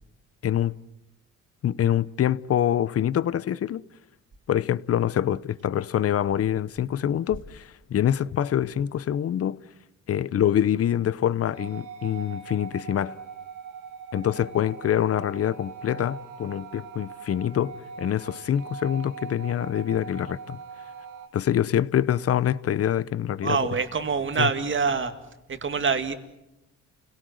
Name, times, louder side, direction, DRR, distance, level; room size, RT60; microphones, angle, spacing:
voice 1, 0.4-0.7 1.6-3.8 4.5-9.6 10.1-13.2 14.1-20.6 21.3-23.6 24.4-24.5, left 10 dB, 50° left, 0.8 m, -25 dB
sound 1, 11.5-21.3, right 6 dB, 85° right, 2.3 m, -41 dB
voice 2, 23.4-25.1 25.5-26.1, right 5 dB, 40° right, 2.3 m, -25 dB
30.0 x 18.0 x 7.8 m
cardioid pair, 90°, 30 cm